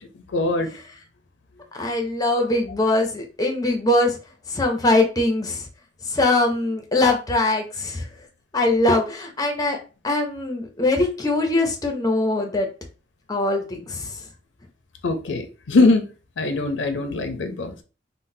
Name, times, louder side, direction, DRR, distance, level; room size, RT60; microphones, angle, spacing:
voice 1, 0.3-0.7 15.0-16.0 16.4-17.8, left 3 dB, 80° left, 0.5 m, -21 dB
voice 2, 1.7-4.2 4.5-5.7 6.1-8.1 8.5-9.8 10.0-12.7 13.3-14.2, left 2 dB, 20° left, 0.5 m, -22 dB
3.8 x 2.0 x 2.6 m
head